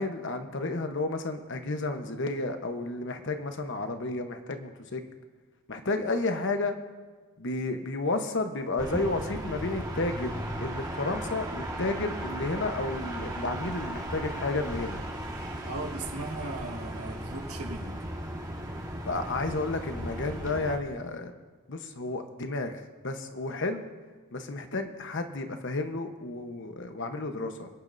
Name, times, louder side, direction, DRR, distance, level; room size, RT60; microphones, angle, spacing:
voice 1, 0.0-5.0 5.7-6.7 7.4-15.0 19.1-21.3 21.7-23.8 24.3-27.7, left 2 dB, 60° left, 6 dB, 1.1 m, -32 dB
sound 1, 8.8-20.8, right 1 dB, 20° right, 1.6 m, -36 dB
voice 2, 15.6-18.0, right 2 dB, 90° right, 2 dB, 1.8 m, -38 dB
26.5 x 10.5 x 2.7 m, 1.5 s
head